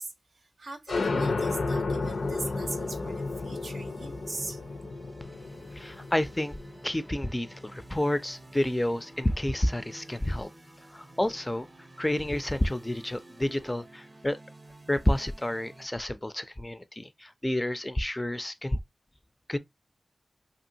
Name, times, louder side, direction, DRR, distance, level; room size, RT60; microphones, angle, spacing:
voice 1, 0.0-4.6, right 3 dB, 70° right, 0.6 m, -40 dB
sound 1, 0.9-8.1, left 3 dB, 85° left, 0.4 m, -32 dB
sound 2, 2.0-15.9, right 2 dB, 30° right, 0.6 m, -52 dB
voice 2, 5.7-6.6 6.8-10.5 10.9-11.7 12.0-14.4 14.9-18.8 19.5-19.6, left 1 dB, 15° left, 0.3 m, -29 dB
2.8 x 2.6 x 2.6 m
cardioid pair, 60°, 0 cm